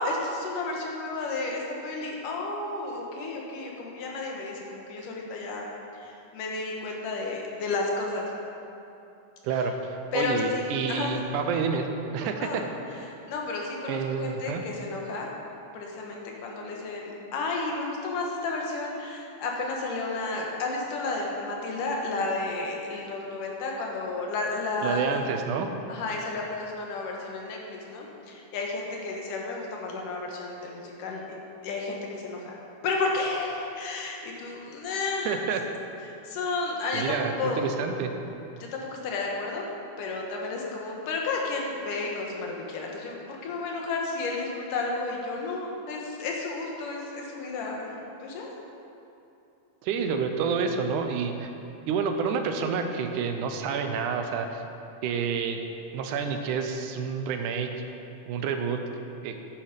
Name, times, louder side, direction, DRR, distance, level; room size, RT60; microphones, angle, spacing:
voice 1, 0.0-5.6 5.9-8.3 10.1-11.1 12.4-12.7 13.3-15.3 15.7-25.3 25.9-31.4 31.6-35.4 36.2-37.6 38.7-39.6 40.0-48.5, left 3 dB, 85° left, -1 dB, 3.0 m, -32 dB
voice 2, 9.4-11.9 12.1-12.6 13.9-14.6 24.8-25.7 35.3-35.6 36.9-38.1 49.8-51.5 51.9-54.6 55.0-55.6 55.9-57.7 58.3-58.8 59.2-59.4, right 6 dB, 80° right, 5 dB, 2.2 m, -29 dB
10.5 x 9.2 x 5.3 m, 2.8 s
omnidirectional pair, 3.6 m